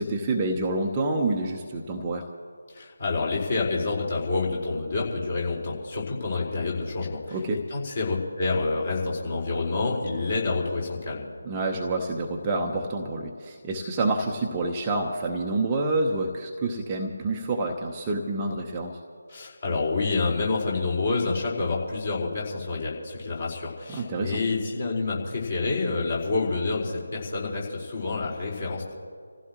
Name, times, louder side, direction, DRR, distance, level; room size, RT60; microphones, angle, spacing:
voice 1, 0.0-2.3 7.3-7.6 11.4-19.0 23.9-24.4, right 2 dB, 15° right, 0 dB, 0.9 m, -28 dB
voice 2, 2.7-7.4 7.7-11.2 19.3-28.9, left 3 dB, 40° left, -3 dB, 4.5 m, -28 dB
28.5 x 15.5 x 3.0 m, 2.1 s
figure-of-eight pair, 155°, 0 cm